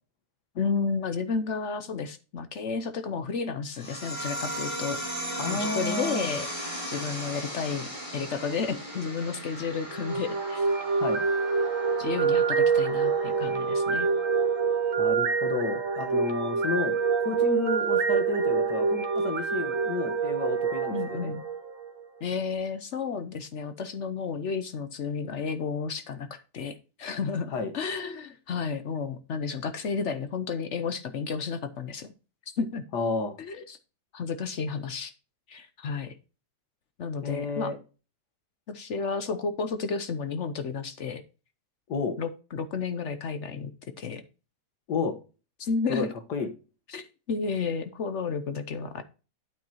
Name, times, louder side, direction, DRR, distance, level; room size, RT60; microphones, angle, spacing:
voice 1, 0.5-6.5 6.9-10.7 12.0-14.1 20.9-21.4 22.2-32.1 32.6-32.8 33.4-33.8 34.1-35.1 35.5-36.1 37.0-37.7 38.7-41.2 42.2-43.7 44.0-44.2 45.6-46.1 46.9-49.0, left 5 dB, 55° left, 11 dB, 0.9 m, -32 dB
sound 1, 3.7-14.8, right 1 dB, 20° left, 5.0 m, -37 dB
voice 2, 5.4-6.3 11.0-11.2 15.0-21.3 27.5-27.7 32.9-33.4 37.2-37.8 41.9-42.2 44.9-45.1 45.9-46.5, left 4 dB, 85° left, 8 dB, 1.9 m, -31 dB
sound 2, 9.9-22.0, right 5 dB, 55° right, 1.4 m, -26 dB
9.1 x 7.9 x 2.9 m, 0.33 s
omnidirectional pair, 1.7 m